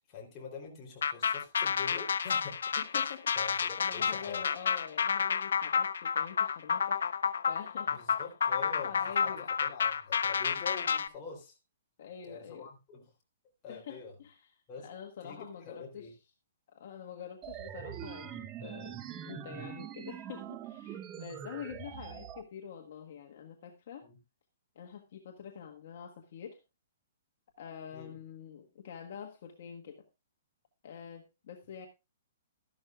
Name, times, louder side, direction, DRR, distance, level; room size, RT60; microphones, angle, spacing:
voice 1, 0.0-2.6 2.9-4.4 7.9-9.3 9.6-11.6 12.3-13.0 13.6-14.1 14.7-14.9 15.2-16.1 24.0-24.2 27.9-28.1, left 5 dB, 20° left, -2 dB, 3.3 m, -45 dB
sound 1, 1.0-11.1, left 6 dB, 85° left, 0.7 m, -30 dB
voice 2, 2.8-3.3 3.8-7.0 7.4-8.0 8.8-9.5 12.0-12.7 13.7-14.5 14.8-16.1 16.7-24.1 24.7-26.6 27.6-30.1 30.8-31.9, left 8 dB, 50° left, 2 dB, 1.4 m, -46 dB
sound 2, 17.4-22.4, right 10 dB, 20° right, 0.6 m, -43 dB
13.0 x 12.0 x 2.4 m, 0.25 s
hypercardioid pair, 170°, 0 cm